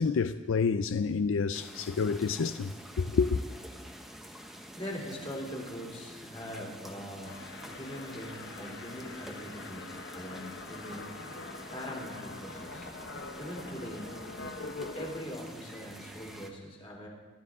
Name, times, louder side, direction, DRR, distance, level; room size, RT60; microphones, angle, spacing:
voice 1, 0.0-3.4, left 5 dB, 75° left, 0.4 m, -28 dB
sound 1, 1.5-16.5, equal, ahead, 0.9 m, -48 dB
voice 2, 4.7-7.4 7.7-9.9 10.1-11.4 11.7-12.9 13.4-14.2 14.9-17.1, equal, 25° left, 2.8 m, -42 dB
sound 2, 7.2-15.2, left 3 dB, 55° left, 0.9 m, -44 dB
24.0 x 12.5 x 3.7 m
head